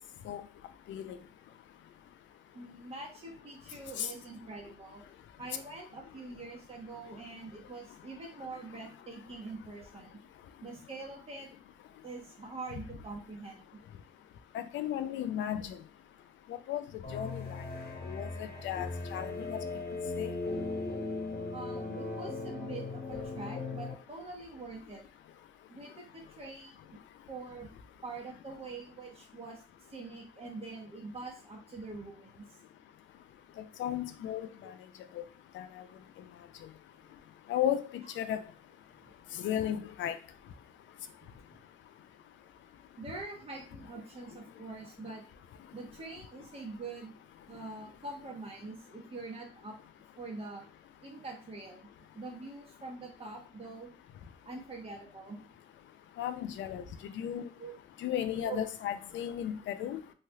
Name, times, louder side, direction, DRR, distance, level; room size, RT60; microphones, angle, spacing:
voice 1, 2.5-5.0 5.4-10.1 10.6-11.5 12.0-13.8 18.5-18.6 21.5-25.0 25.7-26.9 27.3-27.7 28.0-32.6 39.0-39.1 43.0-45.2 45.7-47.2 47.5-49.7 50.2-50.6 51.0-51.9 52.1-53.9 54.4-55.4 57.6-57.8 58.4-58.6, right 3 dB, 30° right, -1 dB, 1.0 m, -44 dB
voice 2, 14.5-15.8 16.5-16.9 17.1-17.4 18.0-19.6 20.2-20.3 33.8-34.7 35.2-35.3 35.5-35.7 37.5-38.4 39.4-40.2 56.2-56.8 57.1-57.5 58.0-60.0, left 10 dB, 70° left, 11 dB, 0.4 m, -34 dB
sound 1, 17.0-23.9, left 3 dB, 50° left, 1.1 m, -38 dB
3.2 x 2.8 x 2.3 m, 0.37 s
cardioid pair, 90°, 20 cm